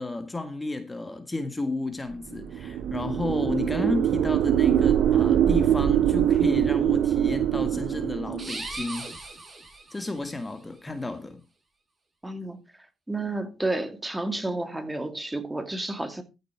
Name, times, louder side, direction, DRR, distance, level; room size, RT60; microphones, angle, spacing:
voice 1, 0.0-9.1 9.9-11.4, left 2 dB, 20° left, 1.7 m, -32 dB
sound 1, 2.4-8.5, right 10 dB, 75° right, 0.8 m, -23 dB
sound 2, 8.3-10.3, right 3 dB, 30° right, 4.6 m, -38 dB
voice 2, 12.2-12.6 13.1-16.2, right 2 dB, 10° right, 2.4 m, -31 dB
14.0 x 6.6 x 4.5 m
cardioid pair, 90°, 0 cm